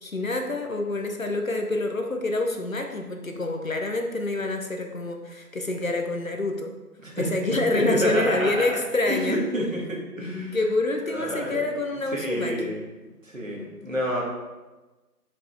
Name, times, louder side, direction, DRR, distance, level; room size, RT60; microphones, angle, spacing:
voice 1, 0.0-6.7 7.2-9.4 10.5-12.7, left 2 dB, 55° left, 4 dB, 0.7 m, -27 dB
voice 2, 7.7-8.8 9.1-10.6 11.1-11.6 12.1-12.9 13.2-14.2, equal, 55° right, -2 dB, 1.6 m, -28 dB
5.6 x 5.3 x 3.2 m, 1.2 s
figure-of-eight pair, 175°, 47 cm